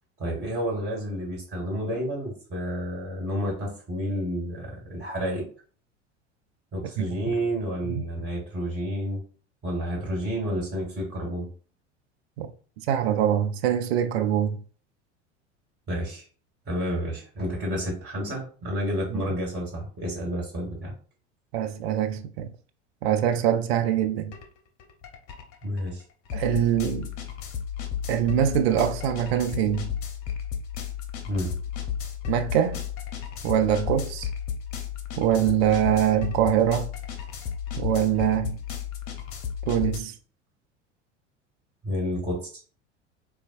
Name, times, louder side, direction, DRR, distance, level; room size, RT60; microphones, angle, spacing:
voice 1, 0.2-5.5 6.7-9.2 9.6-11.5 15.9-16.2 16.7-20.9 25.6-26.0 31.3-31.5 41.8-42.5, equal, 30° right, 1.7 m, -30 dB
voice 2, 12.9-14.6 19.1-19.2 21.5-22.5 23.0-24.4 26.3-27.1 28.1-29.9 32.3-32.8 33.4-34.3 35.2-36.9 37.8-38.6 39.7-40.1, right 10 dB, 60° right, 0.6 m, -24 dB
sound 1, 24.3-24.5 24.8-40.0, left 8 dB, 45° left, 0.7 m, -33 dB
4.0 x 2.3 x 2.5 m
figure-of-eight pair, 75°, 36 cm